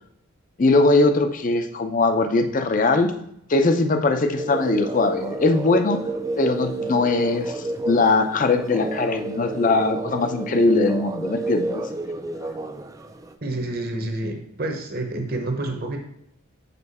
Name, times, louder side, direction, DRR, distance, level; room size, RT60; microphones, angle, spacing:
voice 1, 0.6-3.1 3.5-6.0 6.4-11.8, left 3 dB, 40° left, 7 dB, 0.5 m, -20 dB
sound 1, 4.4-13.3, right 2 dB, 15° right, 0.3 m, -30 dB
voice 2, 13.4-16.0, right 2 dB, 45° right, 4 dB, 0.9 m, -28 dB
6.8 x 4.4 x 4.1 m, 0.74 s
head